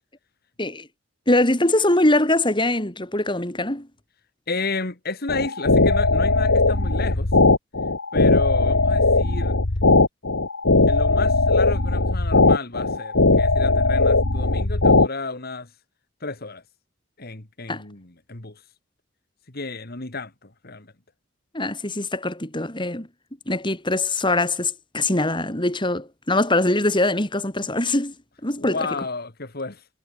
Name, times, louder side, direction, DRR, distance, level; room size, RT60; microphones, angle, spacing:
voice 1, 1.3-3.9 17.7-17.8 21.5-23.1 23.5-28.1 28.4-28.8, left 2 dB, 25° left, 3.9 m, -22 dB
voice 2, 4.5-7.3 8.1-9.6 10.9-15.8 16.2-16.6 17.2-18.7 19.5-20.9 28.6-29.9, left 3 dB, 50° left, 2.3 m, -32 dB
sound 1, 5.3-15.1, left 3 dB, 80° left, 1.9 m, -18 dB
head